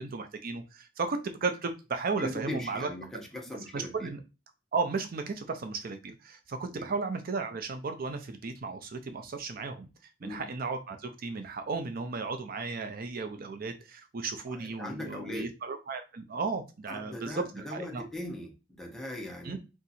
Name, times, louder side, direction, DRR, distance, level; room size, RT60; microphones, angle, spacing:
voice 1, 0.0-2.9 3.7-4.2 4.7-9.9 10.2-18.0 19.4-19.6, right 4 dB, 50° right, 7 dB, 0.5 m, -35 dB
voice 2, 2.2-4.1 6.7-6.9 10.2-10.5 14.5-15.5 16.9-19.6, left 1 dB, ahead, 0 dB, 0.8 m, -39 dB
3.6 x 2.8 x 4.1 m, 0.29 s
head